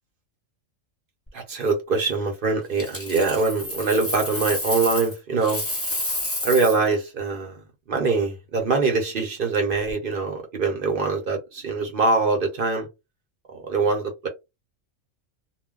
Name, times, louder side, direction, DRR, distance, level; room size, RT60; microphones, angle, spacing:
voice 1, 1.3-5.6 6.4-7.6 7.9-12.9 13.6-14.3, right 3 dB, 50° right, 0.8 m, -23 dB
Coin (dropping), 2.8-5.1 5.4-6.9 9.7-9.9, left 1 dB, 10° left, 1.0 m, -30 dB
2.3 x 2.1 x 3.6 m
omnidirectional pair, 1.3 m